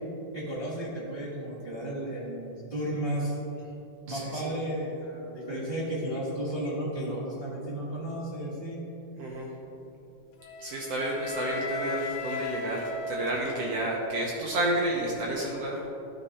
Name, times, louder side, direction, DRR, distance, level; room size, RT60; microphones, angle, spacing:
voice 1, 0.3-3.4 4.0-8.8, right 1 dB, 60° right, -10 dB, 0.5 m, -33 dB
voice 2, 4.1-4.5 9.2-9.5 10.6-15.9, right 1 dB, 75° right, -2 dB, 1.4 m, -31 dB
Wind instrument woodwind instrument, 10.4-14.4, left 4 dB, 75° left, 2.2 m, -37 dB
12.5 x 4.4 x 4.2 m, 2.8 s
omnidirectional pair, 3.8 m